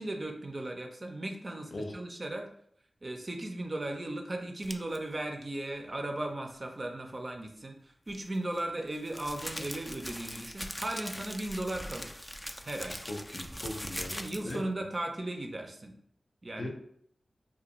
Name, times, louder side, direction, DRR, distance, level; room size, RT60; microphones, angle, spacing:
voice 1, 0.0-2.5 3.0-12.2 12.7-13.0 14.1-15.9 16.4-16.7, right 1 dB, 50° right, 3 dB, 0.5 m, -37 dB
sound 1, 4.6-5.0 8.1-14.6, equal, 10° left, 0.3 m, -41 dB
voice 2, 13.0-14.2 14.4-14.6 16.6-16.7, left 1 dB, 60° left, 1 dB, 0.6 m, -38 dB
2.5 x 2.2 x 2.9 m, 0.67 s
cardioid pair, 40°, 0 cm